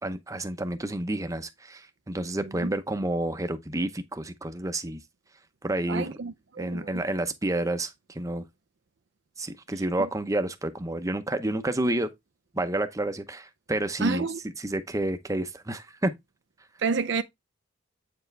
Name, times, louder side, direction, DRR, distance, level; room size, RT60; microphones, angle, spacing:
voice 1, 0.0-5.0 5.6-6.1 6.6-8.5 9.4-12.1 12.5-14.3 14.6-16.1, right 1 dB, 15° right, 0.8 m, -29 dB
voice 2, 2.4-2.7 5.9-7.0 10.0-10.1 14.0-14.4 16.8-17.2, right 4 dB, 60° right, 0.5 m, -30 dB
8.6 x 4.7 x 3.3 m
head